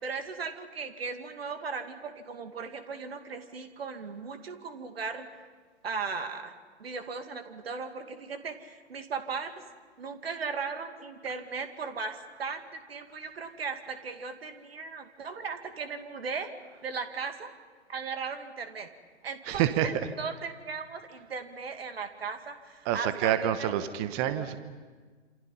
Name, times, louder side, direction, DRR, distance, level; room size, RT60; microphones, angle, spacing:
voice 1, 0.0-5.3 5.8-6.5 6.8-9.5 10.0-16.5 16.8-17.5 17.9-18.9 19.2-23.7, right 5 dB, 60° right, 7 dB, 2.5 m, -37 dB
voice 2, 19.5-19.9 22.8-24.6, right 11 dB, 25° right, 11 dB, 1.2 m, -27 dB
28.0 x 27.5 x 5.6 m, 1.5 s
figure-of-eight pair, 125°, 34 cm